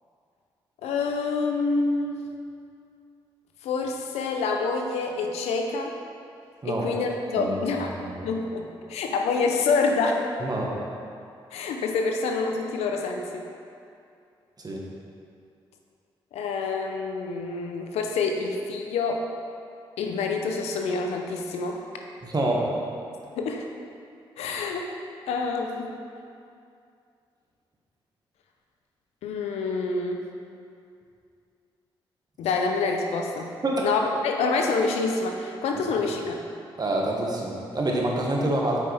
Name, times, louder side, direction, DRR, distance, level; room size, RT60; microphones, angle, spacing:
voice 1, 0.8-2.3 3.6-5.9 6.6-8.0 8.2-10.2 11.5-13.4 16.3-19.3 20.0-21.8 23.4-23.7 24.4-24.9 25.3-25.9 29.2-30.3 32.4-33.5 33.8-36.4, left 4 dB, 85° left, 2 dB, 0.7 m, -27 dB
voice 2, 7.4-7.8 8.2-8.3 10.4-10.7 14.6-14.8 22.2-22.7 33.6-33.8 36.8-38.8, right 1 dB, 40° right, -2 dB, 1.6 m, -26 dB
8.4 x 5.5 x 3.5 m, 2.4 s
supercardioid pair, 50°, 11 cm